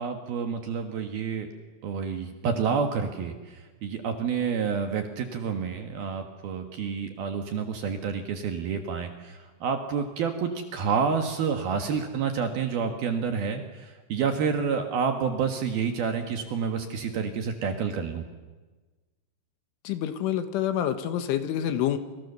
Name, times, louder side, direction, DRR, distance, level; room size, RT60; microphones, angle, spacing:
voice 1, 0.0-1.5 1.8-18.2, right 6 dB, 60° right, 5 dB, 2.8 m, -29 dB
voice 2, 19.9-22.0, left 10 dB, 75° left, 9 dB, 3.7 m, -27 dB
28.0 x 28.0 x 6.9 m, 1.3 s
omnidirectional pair, 5.9 m